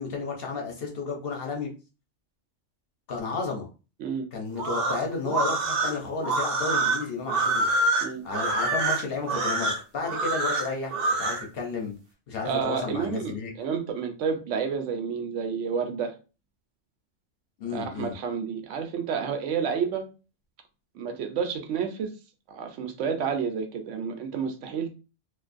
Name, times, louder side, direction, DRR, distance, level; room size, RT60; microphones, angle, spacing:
voice 1, 0.0-1.7 3.1-3.7 4.3-7.7 8.2-11.9 12.3-13.5 17.6-18.1, left 4 dB, 60° left, 0.8 m, -32 dB
sound 1, 4.5-11.4, right 2 dB, 60° right, 0.7 m, -26 dB
voice 2, 12.4-16.2 17.7-20.1 20.9-22.1 22.5-24.9, right 6 dB, 85° right, 0.9 m, -30 dB
2.4 x 2.2 x 2.5 m
omnidirectional pair, 1.2 m